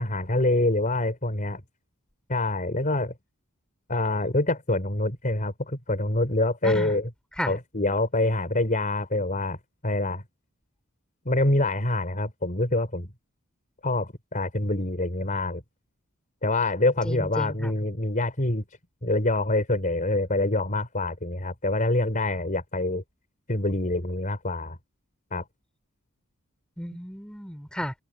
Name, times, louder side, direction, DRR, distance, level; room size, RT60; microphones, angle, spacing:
voice 1, 0.0-1.6 2.3-3.1 3.9-7.0 7.5-9.6 9.8-10.2 11.2-13.1 13.8-15.6 16.4-18.6 19.0-23.0 23.5-24.8 25.3-25.4, left 2 dB, 40° left, 4.6 m, -25 dB
voice 2, 17.0-17.7 26.8-27.9, equal, 5° left, 4.7 m, -33 dB
open air
head